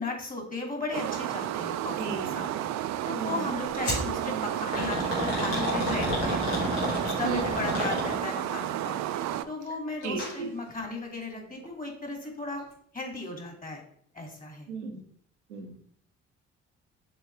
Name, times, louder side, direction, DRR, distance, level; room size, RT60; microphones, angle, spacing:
voice 1, 0.0-2.5 3.0-6.6 6.9-9.0 9.5-12.7 12.9-13.8 14.1-14.7, left 2 dB, 25° left, 1 dB, 2.3 m, -36 dB
sound 1, 0.9-9.5, right 12 dB, 55° right, 0.5 m, -32 dB
voice 2, 2.0-2.4 3.1-3.4 7.2-7.6 10.0-10.5 14.7-15.0 15.5-15.8, right 4 dB, 90° right, 5 dB, 0.8 m, -34 dB
sound 2, 3.8-4.1 4.7-8.4 10.0-10.3 10.7-10.8 11.6-11.7, left 1 dB, 85° left, 2.2 m, -30 dB
6.7 x 4.2 x 3.3 m, 0.63 s
hypercardioid pair, 45°, 34 cm